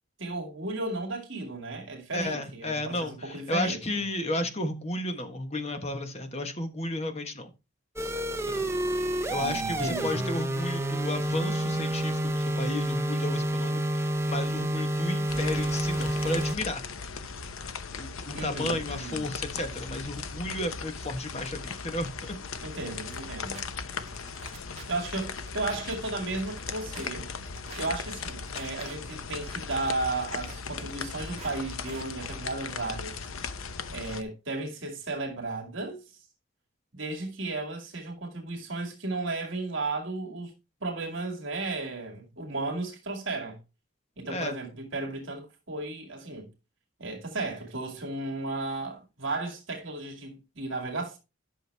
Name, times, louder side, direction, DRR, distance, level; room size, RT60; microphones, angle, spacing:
voice 1, 0.2-4.0 9.3-10.3 18.3-19.3 22.6-23.7 24.9-27.3 27.8-33.2 33.9-36.0 36.9-40.5 40.8-43.6 44.2-46.5 47.0-51.2, right 2 dB, 60° right, 2.3 m, -34 dB
voice 2, 2.1-7.5 8.5-8.7 9.3-16.8 18.0-22.4 44.3-44.5, left 1 dB, 30° left, 1.3 m, -33 dB
sound 1, 8.0-16.6, right 1 dB, 10° right, 0.7 m, -29 dB
sound 2, 15.3-34.2, left 5 dB, 75° left, 0.8 m, -38 dB
sound 3, 23.1-23.2 23.5-23.6 24.0-24.8 25.1-25.9 26.3-27.1 27.5-27.9 28.3-28.9 29.3-30.5 30.9-31.6 31.9-32.0, right 5 dB, 30° right, 1.7 m, -46 dB
11.0 x 6.3 x 3.4 m
head